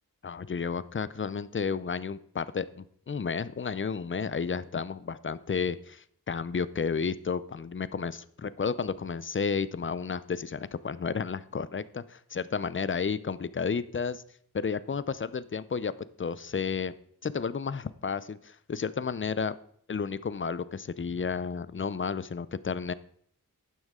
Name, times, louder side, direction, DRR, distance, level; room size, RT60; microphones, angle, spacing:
voice 1, 0.2-14.2 14.5-15.9 16.2-16.9 17.2-19.5 19.9-22.9, left 5 dB, 35° left, 17 dB, 0.5 m, -32 dB
12.0 x 9.4 x 3.7 m, 0.65 s
wide cardioid pair, 85°, 36 cm